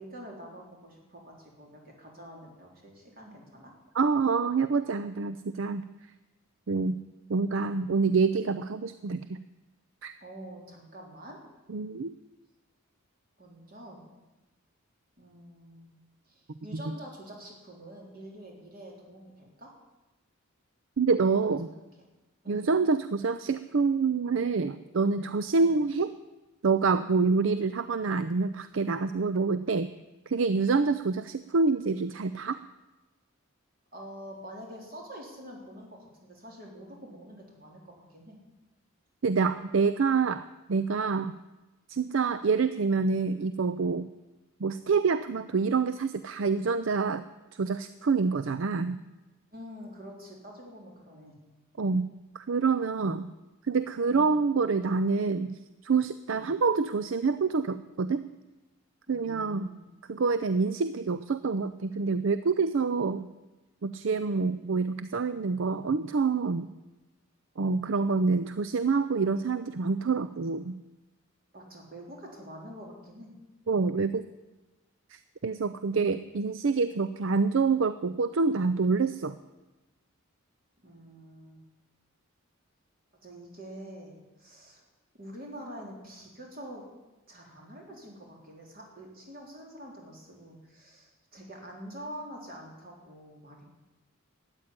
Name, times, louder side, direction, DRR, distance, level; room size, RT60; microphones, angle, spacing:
voice 1, 0.0-3.7 10.2-11.4 13.4-14.0 15.2-15.9 16.3-19.7 21.6-21.7 22.4-22.6 25.6-25.8 33.9-38.4 49.5-51.3 54.1-54.3 56.3-56.5 59.1-59.8 64.3-64.5 71.5-73.3 80.8-81.6 83.2-84.8 85.1-86.8 87.3-93.6, equal, 45° right, 0 dB, 3.9 m, -46 dB
voice 2, 3.9-5.8 6.7-7.0 7.3-9.4 10.0-10.1 11.7-12.1 16.7-16.9 21.0-21.7 22.5-26.1 26.6-29.9 30.3-32.6 39.2-41.4 41.9-44.1 44.6-47.2 47.6-49.0 51.8-52.1 52.3-53.3 53.7-58.3 59.1-59.7 60.1-63.3 63.8-66.7 67.6-70.8 73.7-74.3 75.1-79.4, right 4 dB, 65° right, 12 dB, 0.5 m, -27 dB
13.0 x 9.0 x 10.0 m, 1.1 s
head